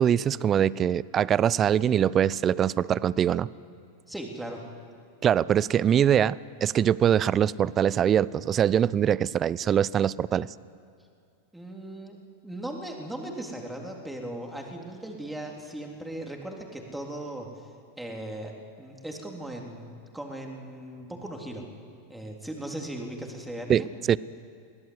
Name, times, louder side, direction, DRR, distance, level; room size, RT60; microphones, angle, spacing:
voice 1, 0.0-3.5 5.2-10.5 23.7-24.2, right 9 dB, 30° right, 21 dB, 0.5 m, -23 dB
voice 2, 4.1-4.6 11.5-12.2 12.4-17.5 18.0-18.5 18.8-21.6 22.1-23.9, right 1 dB, 5° right, 1 dB, 3.3 m, -38 dB
22.0 x 17.0 x 8.0 m, 2.3 s
hypercardioid pair, 90°, 0 cm